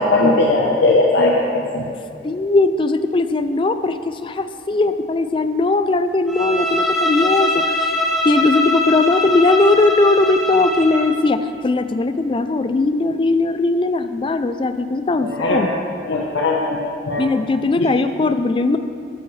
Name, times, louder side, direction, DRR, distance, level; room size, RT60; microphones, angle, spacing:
voice 1, 0.0-1.8 15.2-15.7 16.1-17.3 17.8-17.9, left 2 dB, 75° left, -2 dB, 0.8 m, -18 dB
voice 2, 2.2-15.7 17.2-18.8, left 3 dB, 25° left, 10 dB, 0.3 m, -19 dB
Bowed string instrument, 6.3-11.2, left 1 dB, ahead, 1.1 m, -22 dB
12.5 x 9.1 x 3.2 m, 2.4 s
head